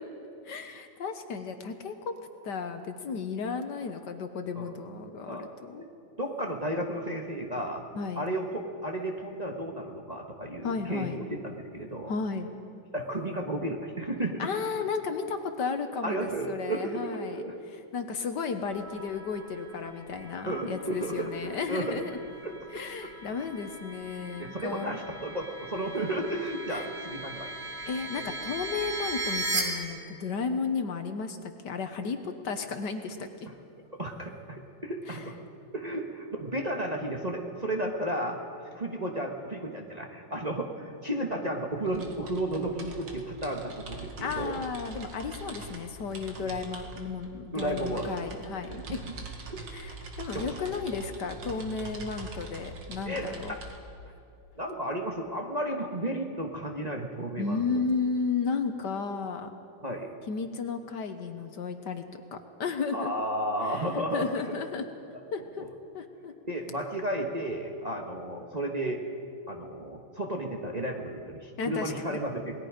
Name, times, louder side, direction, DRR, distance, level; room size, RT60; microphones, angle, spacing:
voice 1, 0.4-2.1 2.4-5.8 7.9-8.2 10.6-11.2 12.1-12.5 14.4-17.4 17.7-22.2 22.7-25.0 26.7-26.9 27.9-33.5 35.1-35.2 44.2-49.0 49.7-53.6 57.4-59.5 60.3-63.1 63.6-64.9 65.3-65.6 65.9-66.3 71.6-72.2, left 5 dB, 60° left, 7 dB, 1.6 m, -34 dB
voice 2, 6.2-7.8 8.2-8.5 8.8-12.1 12.9-14.4 16.0-17.5 20.4-21.9 22.4-22.5 23.0-23.1 24.4-27.5 28.2-28.3 34.0-35.4 35.7-38.4 38.7-44.6 46.4-46.5 47.5-48.1 48.8-49.0 49.5-49.7 50.3-50.5 53.0-53.6 54.6-57.8 59.8-60.1 62.9-64.6 65.6-65.7 66.5-69.0 69.5-72.6, right 1 dB, 20° right, 0 dB, 1.4 m, -33 dB
sound 1, 18.7-29.6, right 2 dB, 60° right, 3.5 m, -39 dB
sound 2, 41.8-53.8, right 3 dB, 85° right, 2.7 m, -43 dB
28.0 x 20.0 x 5.1 m, 2.5 s
omnidirectional pair, 2.2 m